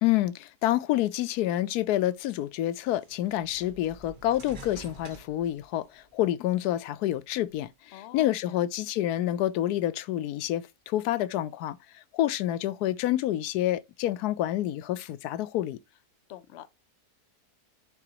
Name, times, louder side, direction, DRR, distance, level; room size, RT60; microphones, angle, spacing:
voice 1, 0.0-15.8, left 13 dB, 80° left, 1.1 m, -28 dB
sound 1, 2.0-2.1 3.0-6.1 6.6-7.6, right 3 dB, 35° right, 1.1 m, -48 dB
voice 2, 7.9-8.6 16.3-16.7, left 12 dB, 60° left, 0.7 m, -46 dB
11.0 x 4.0 x 2.9 m
omnidirectional pair, 1.7 m